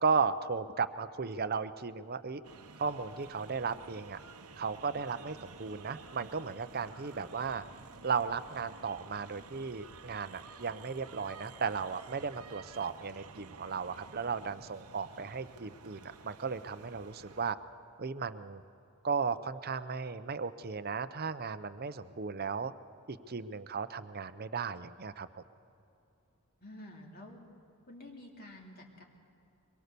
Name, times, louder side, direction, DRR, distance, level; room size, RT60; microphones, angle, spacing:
voice 1, 0.0-2.4 2.8-4.2 4.6-7.6 8.0-17.6 18.0-18.6 19.0-22.7 23.1-25.3, right 5 dB, 45° right, 12 dB, 0.7 m, -35 dB
sound 1, 2.4-17.5, right 4 dB, 85° right, 1.1 m, -52 dB
voice 2, 26.6-27.4 27.9-29.0, left 1 dB, 45° left, 0 dB, 2.9 m, -49 dB
24.0 x 22.0 x 6.9 m, 2.8 s
head